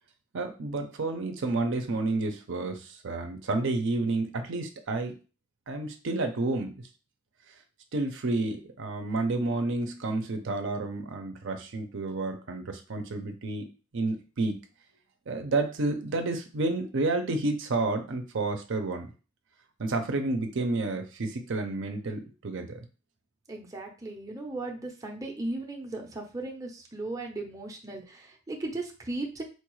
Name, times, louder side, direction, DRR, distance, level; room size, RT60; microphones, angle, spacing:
voice 1, 0.3-5.2 5.7-6.7 7.9-14.6 15.3-19.1 19.8-22.8, right 2 dB, 65° right, 5 dB, 0.6 m, -30 dB
voice 2, 23.5-29.4, right 2 dB, 15° right, 0 dB, 0.6 m, -36 dB
4.4 x 2.3 x 3.0 m, 0.34 s
head